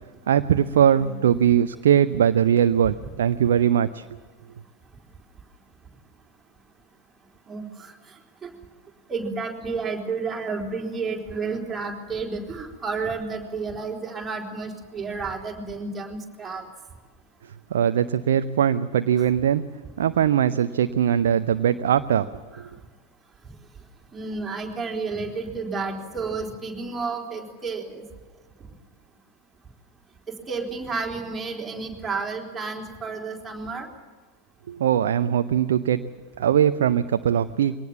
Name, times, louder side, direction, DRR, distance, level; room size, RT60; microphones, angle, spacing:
voice 1, 0.3-4.1 17.7-19.6 20.0-22.3 22.6-22.7 34.7-36.0 36.4-37.8, right 9 dB, 60° right, 10 dB, 0.6 m, -21 dB
voice 2, 7.5-7.9 8.4-8.5 9.1-16.6 24.1-28.0 30.3-33.9, right 4 dB, 15° right, 0 dB, 4.1 m, -31 dB
23.0 x 18.5 x 7.2 m, 1.4 s
figure-of-eight pair, 90°, 0 cm